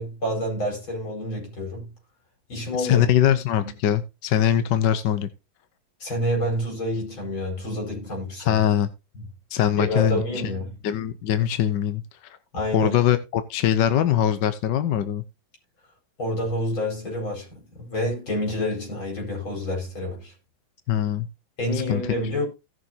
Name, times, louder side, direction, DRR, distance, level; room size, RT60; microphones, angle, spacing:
voice 1, 0.0-1.9 2.5-3.1 3.6-3.7 6.0-8.6 9.8-10.7 12.5-13.0 16.2-20.3 21.6-22.5, left 1 dB, 80° left, 5.6 m, -28 dB
voice 2, 2.8-5.3 8.4-8.9 9.5-10.2 10.8-12.4 12.7-15.2 20.9-21.3 21.9-22.0, left 10 dB, 65° left, 1.4 m, -22 dB
17.0 x 6.3 x 2.8 m
omnidirectional pair, 2.2 m